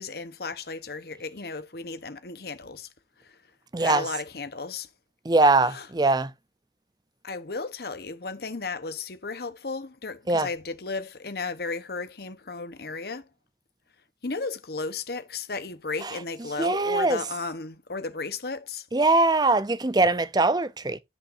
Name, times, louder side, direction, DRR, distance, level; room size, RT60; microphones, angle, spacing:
voice 1, 0.0-2.9 3.2-3.4 3.8-4.9 5.7-5.9 7.2-13.3 14.2-18.9, left 4 dB, 60° left, 1.0 m, -34 dB
voice 2, 3.7-4.1 5.2-6.3 10.3-10.5 16.0-16.2 16.6-17.2 18.9-21.0, right 2 dB, 25° right, 0.6 m, -22 dB
10.0 x 8.5 x 2.7 m
head